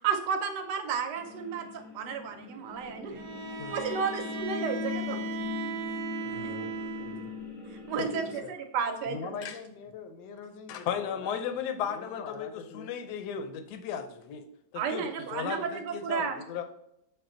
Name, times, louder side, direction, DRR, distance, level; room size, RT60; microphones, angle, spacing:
voice 1, 0.0-3.1 3.7-5.2 7.7-9.3 14.7-16.4, right 6 dB, 70° right, 1.2 m, -32 dB
sound 1, 1.2-8.4, left 7 dB, 30° left, 0.6 m, -40 dB
Bowed string instrument, 3.1-7.4, right 7 dB, 90° right, 1.4 m, -38 dB
voice 2, 6.2-6.7 7.0-7.3 9.1-11.5 11.8-12.9 13.4-13.5, left 5 dB, 90° left, 1.4 m, -43 dB
voice 3, 8.0-8.5 9.4-9.6 10.7-14.4 14.7-16.6, left 7 dB, 75° left, 1.0 m, -36 dB
6.3 x 2.2 x 3.7 m
omnidirectional pair, 2.0 m